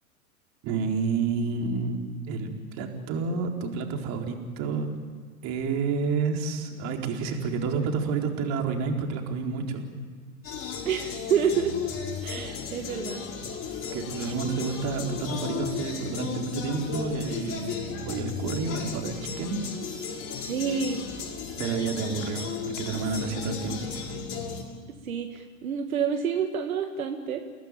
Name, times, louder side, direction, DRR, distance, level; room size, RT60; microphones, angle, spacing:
voice 1, 0.6-2.0 2.3-4.9 5.4-9.9 13.9-17.8 18.1-19.6 21.6-23.8, right 4 dB, 40° right, 3 dB, 4.3 m, -29 dB
sound 1, 10.4-24.6, left 6 dB, 30° left, 6.7 m, -35 dB
voice 2, 10.9-11.7 12.2-13.2 20.4-21.0 25.0-27.4, right 7 dB, 70° right, 5 dB, 2.2 m, -28 dB
30.0 x 18.5 x 9.3 m, 1.5 s
hypercardioid pair, 105°, 43 cm